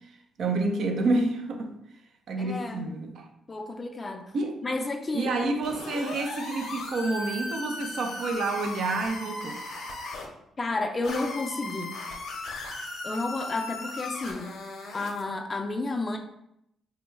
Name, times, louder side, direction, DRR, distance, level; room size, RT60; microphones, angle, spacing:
voice 1, 0.4-1.7 2.3-3.3 4.3-4.6 5.1-9.6, right 2 dB, 65° right, 4 dB, 0.5 m, -28 dB
voice 2, 2.4-2.9 3.5-4.2 4.6-5.3 10.6-12.0 13.0-14.5 14.9-16.2, left 2 dB, 30° left, 5 dB, 0.4 m, -31 dB
sound 1, 5.6-10.3 11.0-15.2, left 2 dB, 75° left, 0.6 m, -37 dB
3.4 x 2.2 x 3.0 m, 0.79 s
cardioid pair, 100°, 0 cm